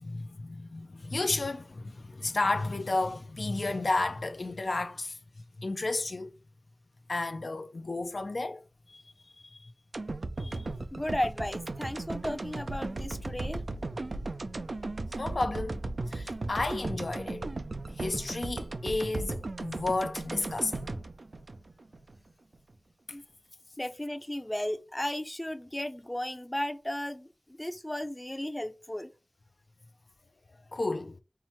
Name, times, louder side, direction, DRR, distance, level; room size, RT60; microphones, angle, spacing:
voice 1, 0.0-5.2 5.6-6.3 7.1-9.7 10.4-11.0 15.2-15.8 16.1-17.5 18.0-20.9 30.7-31.2, left 2 dB, 80° left, 0.4 m, -32 dB
sound 1, 9.9-22.2 22.5-22.6, right 2 dB, 85° right, 0.4 m, -36 dB
voice 2, 10.9-13.6 23.1-23.2 23.8-29.1, left 1 dB, 20° left, 0.5 m, -35 dB
5.6 x 2.1 x 2.9 m
wide cardioid pair, 60°, 0 cm